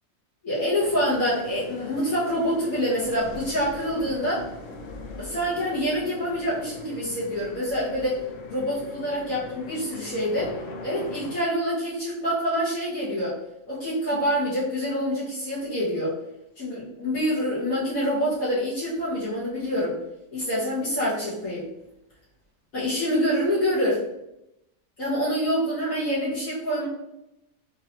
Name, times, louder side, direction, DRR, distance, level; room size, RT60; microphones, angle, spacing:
voice 1, 0.4-4.5 5.2-8.2 8.5-10.5 10.8-13.4 13.7-16.1 16.6-20.0 20.3-21.7 22.7-24.0 25.0-26.9, equal, 85° left, -12 dB, 1.9 m, -26 dB
sound 1, 0.8-11.4, left 3 dB, 70° left, 1.0 m, -41 dB
3.8 x 2.8 x 2.9 m, 0.87 s
omnidirectional pair, 1.4 m